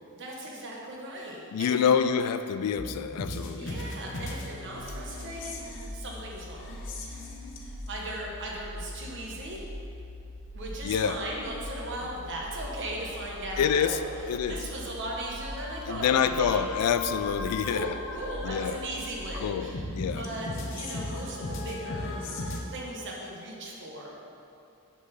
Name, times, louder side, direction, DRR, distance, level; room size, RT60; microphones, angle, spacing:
voice 1, 0.1-2.0 3.5-6.8 7.9-9.6 10.5-16.8 17.3-22.3 22.7-24.1, right 1 dB, 55° right, -2 dB, 1.1 m, -38 dB
voice 2, 1.5-3.7 10.8-11.2 13.6-13.9 14.3-14.6 15.9-17.9 18.4-18.8 19.4-20.2, left 7 dB, 80° left, 10 dB, 0.3 m, -26 dB
sound 1, 2.8-22.6, left 2 dB, 55° left, 0.7 m, -39 dB
6.1 x 4.0 x 5.7 m, 2.6 s
head